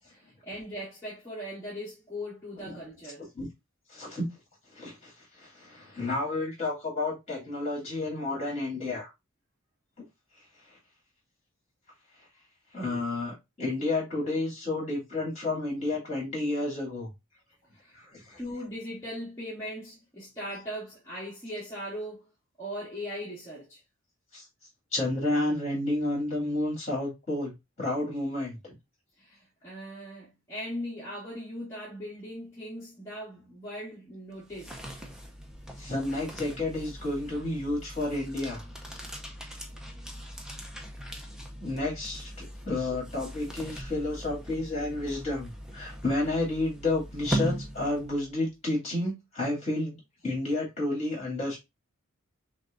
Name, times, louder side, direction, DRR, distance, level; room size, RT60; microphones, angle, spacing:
voice 1, 0.1-3.3 17.7-17.9 18.4-22.3 22.6-23.8 29.2-34.8, equal, 15° left, 1.6 m, -39 dB
voice 2, 3.9-4.3 4.7-5.1 5.4-9.1 12.7-17.1 17.9-18.4 24.3-24.4 24.9-27.5 27.8-28.7 35.8-38.6 41.6-50.0 50.2-51.6, left 2 dB, 30° left, 2.5 m, -31 dB
sound 1, 34.3-48.4, right 1 dB, 5° right, 0.5 m, -39 dB
5.9 x 2.2 x 2.5 m
head